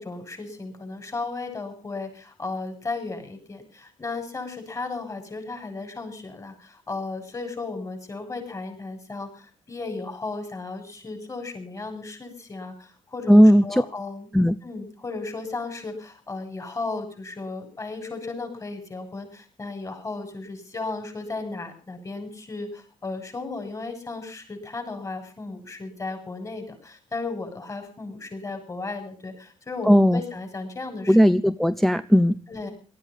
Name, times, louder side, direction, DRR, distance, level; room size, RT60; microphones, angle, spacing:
voice 1, 0.0-14.3 14.6-31.2 32.5-32.7, left 3 dB, 25° left, 6 dB, 7.6 m, -35 dB
voice 2, 13.3-13.6 14.3-14.6 29.9-30.2 31.1-32.3, equal, ahead, 12 dB, 0.7 m, -16 dB
18.5 x 14.0 x 5.6 m, 0.39 s
cardioid pair, 100°, 13 cm